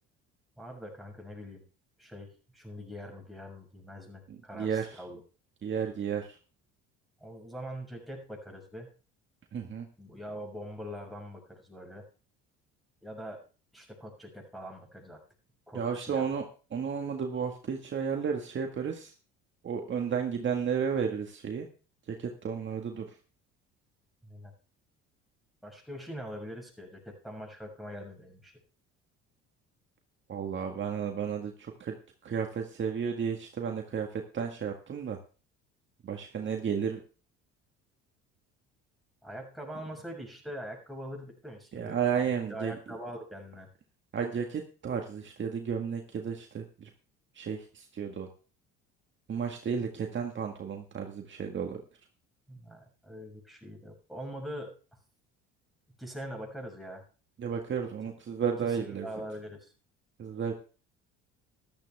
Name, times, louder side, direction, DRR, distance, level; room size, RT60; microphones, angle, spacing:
voice 1, 0.6-1.6 2.0-5.2 7.2-8.9 10.0-12.0 13.0-13.4 13.7-15.2 15.7-16.3 24.2-24.5 25.6-28.5 39.2-42.0 42.5-43.7 52.5-54.7 56.0-57.0 58.6-59.7, equal, ahead, -1 dB, 6.3 m, -43 dB
voice 2, 4.3-5.0 5.6-6.3 9.5-9.9 15.7-16.4 16.7-19.1 19.6-21.7 22.2-23.0 30.3-31.9 32.2-35.2 36.0-37.0 41.7-42.8 44.1-46.9 47.3-48.3 49.3-51.8 57.4-59.1 60.2-60.5, right 7 dB, 40° right, 3 dB, 1.8 m, -33 dB
13.5 x 12.5 x 3.5 m, 0.37 s
supercardioid pair, 85°, 30 cm